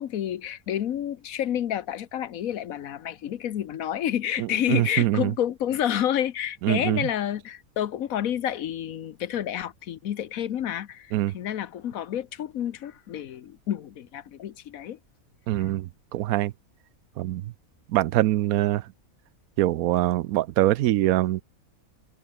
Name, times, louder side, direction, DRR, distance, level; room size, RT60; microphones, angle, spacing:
voice 1, 0.0-15.0, left 10 dB, 75° left, 1.3 m, -29 dB
voice 2, 4.4-5.3 6.6-7.0 11.1-11.3 15.5-16.5 17.2-17.4 17.9-18.8 19.6-21.4, right 15 dB, 80° right, 1.0 m, -23 dB
omnidirectional pair, 1.5 m